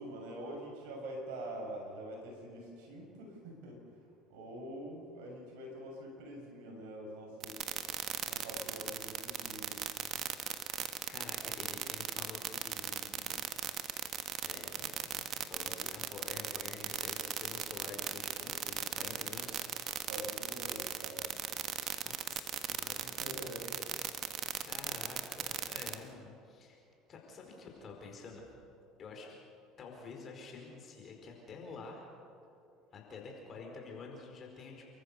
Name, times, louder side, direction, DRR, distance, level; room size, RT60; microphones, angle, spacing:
voice 1, 0.0-3.8 4.3-7.6 8.3-9.7 20.1-21.3 23.0-23.7, right 1 dB, 75° right, 0 dB, 6.9 m, -45 dB
sound 1, 7.4-26.0, right 10 dB, 50° right, 1.4 m, -37 dB
voice 2, 10.6-13.6 14.4-19.6 21.8-23.0 23.6-23.8 24.6-26.8 27.1-28.4 29.0-29.4 29.8-32.1 32.9-34.9, left 4 dB, 40° left, 1 dB, 4.8 m, -49 dB
29.0 x 14.0 x 6.9 m, 2.5 s
hypercardioid pair, 80°, 0 cm